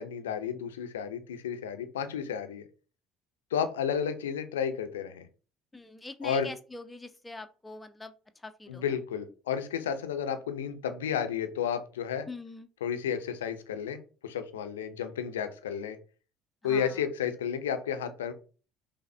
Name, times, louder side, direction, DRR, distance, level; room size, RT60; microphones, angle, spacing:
voice 1, 0.0-2.6 3.5-5.3 6.2-6.5 8.7-12.3 12.8-16.0 16.6-18.3, left 8 dB, 75° left, 8 dB, 0.5 m, -32 dB
voice 2, 5.7-8.1 8.4-8.8 12.3-12.7 16.6-16.9, left 2 dB, 10° left, 8 dB, 0.4 m, -43 dB
5.5 x 2.1 x 3.2 m, 0.36 s
figure-of-eight pair, 55°, 0 cm